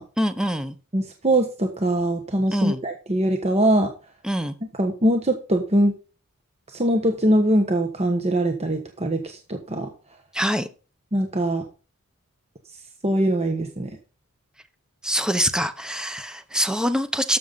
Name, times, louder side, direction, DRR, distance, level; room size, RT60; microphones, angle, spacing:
voice 1, 0.2-0.7 2.5-2.8 4.2-4.5 10.3-10.7 15.0-17.4, equal, 5° right, 10 dB, 0.9 m, -24 dB
voice 2, 0.9-3.9 4.8-5.9 6.7-9.9 11.1-11.6 13.0-13.9, right 1 dB, 30° right, 4 dB, 1.3 m, -22 dB
12.5 x 7.3 x 4.0 m, 0.35 s
head